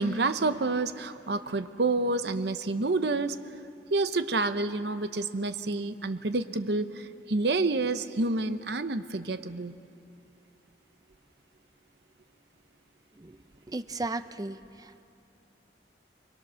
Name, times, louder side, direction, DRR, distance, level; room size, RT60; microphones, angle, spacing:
voice 1, 0.0-3.4 3.9-9.7, right 3 dB, 65° right, 11 dB, 0.8 m, -28 dB
voice 2, 13.7-15.0, right 2 dB, 20° right, 11 dB, 0.5 m, -36 dB
28.5 x 21.5 x 6.3 m, 2.6 s
head